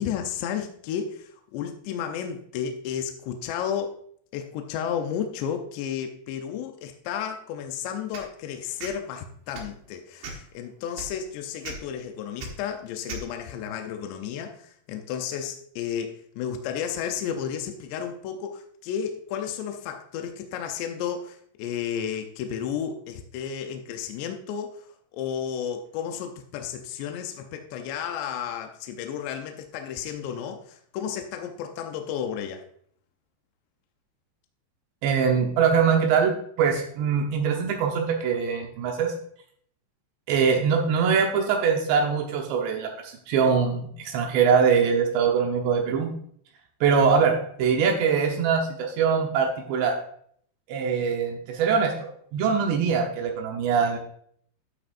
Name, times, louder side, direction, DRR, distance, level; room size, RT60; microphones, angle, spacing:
voice 1, 0.0-3.9 4.3-32.6, left 8 dB, 80° left, 5 dB, 2.9 m, -32 dB
sound 1, 8.1-8.3 8.8-8.9 9.5-9.7 10.2-10.5 11.0-11.1 11.6-11.8 12.4-12.5 13.1-13.2, right 4 dB, 65° right, 3.0 m, -36 dB
voice 2, 35.0-39.1 40.3-46.1 46.8-50.0 50.7-54.0, right 6 dB, 80° right, 2 dB, 3.2 m, -23 dB
12.0 x 7.9 x 2.6 m, 0.63 s
omnidirectional pair, 5.0 m